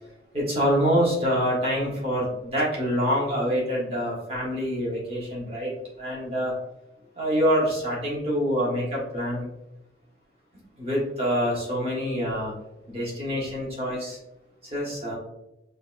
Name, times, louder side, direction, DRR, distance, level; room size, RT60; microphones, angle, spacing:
voice 1, 0.3-5.7 6.0-6.5 7.1-9.5 10.8-12.5 12.9-14.2 14.6-15.2, equal, 30° right, -5 dB, 1.2 m, -26 dB
5.1 x 2.3 x 2.5 m, 0.92 s
head